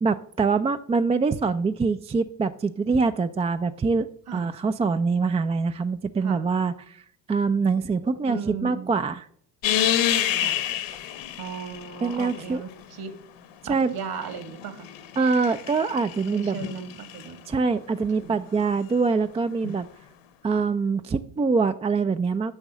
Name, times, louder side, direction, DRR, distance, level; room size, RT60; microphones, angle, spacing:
voice 1, 0.0-4.1 4.3-7.0 7.3-9.2 12.0-12.6 13.7-13.9 15.2-16.6 17.5-19.9 20.4-22.5, right 4 dB, 15° right, 10 dB, 0.4 m, -24 dB
voice 2, 6.2-6.5 8.3-9.0 10.4-10.6 11.4-13.1 13.7-14.9 16.3-17.4 17.9-18.5 20.5-20.6, right 7 dB, 45° right, 11 dB, 1.5 m, -37 dB
sound 1, 9.6-12.7 13.8-17.3 19.6-19.7, left 11 dB, 60° left, 1.3 m, -29 dB
10.0 x 5.5 x 7.2 m, 0.63 s
hypercardioid pair, 65°, 49 cm